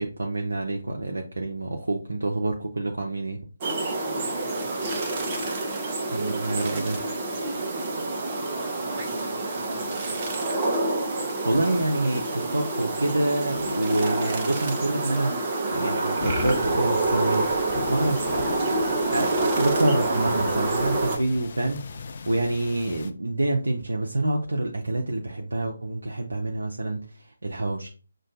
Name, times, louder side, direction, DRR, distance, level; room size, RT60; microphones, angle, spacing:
voice 1, 0.0-3.4 6.1-7.0 11.2-17.5 17.9-18.8 19.1-27.9, right 2 dB, 75° right, 0.6 m, -27 dB
sound 1, 3.6-21.2, right 2 dB, 30° right, 0.7 m, -27 dB
voice 2, 3.6-5.5 5.9-7.0 7.4-10.6, right 2 dB, 50° right, 1.1 m, -40 dB
sound 2, 16.2-23.1, left 4 dB, 45° left, 0.4 m, -37 dB
6.2 x 2.3 x 2.6 m
figure-of-eight pair, 145°, 0 cm